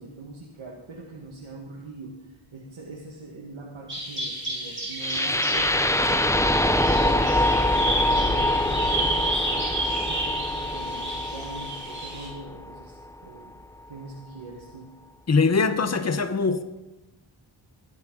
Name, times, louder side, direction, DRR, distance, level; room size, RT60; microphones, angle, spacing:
voice 1, 0.0-13.6 13.9-14.9, right 2 dB, 75° right, -2 dB, 1.8 m, -42 dB
Bird vocalization bird call bird song, 3.9-12.3, right 1 dB, 25° right, 4.9 m, -31 dB
sound 1, 5.0-13.0, left 1 dB, 5° left, 0.4 m, -24 dB
voice 2, 15.3-16.6, left 4 dB, 35° left, 10 dB, 1.0 m, -22 dB
19.5 x 10.5 x 3.9 m, 1.0 s
wide cardioid pair, 75°, 48 cm